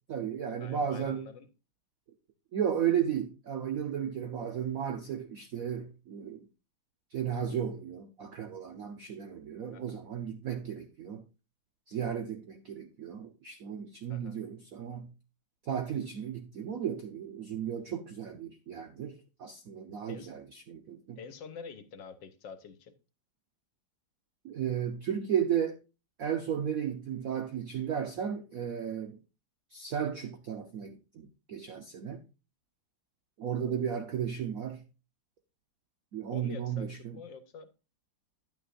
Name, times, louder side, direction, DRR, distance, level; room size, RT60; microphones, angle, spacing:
voice 1, 0.0-1.3 2.5-6.5 7.1-11.2 11.9-15.1 15.6-21.2 24.4-25.8 26.2-29.2 29.7-32.2 33.4-34.8 36.1-37.2, right 8 dB, 60° right, 1.0 m, -34 dB
voice 2, 0.6-1.5 9.7-10.0 14.1-14.4 20.1-20.3 21.2-22.9 36.3-37.7, left 5 dB, 65° left, 1.6 m, -46 dB
10.5 x 9.3 x 2.5 m
omnidirectional pair, 2.2 m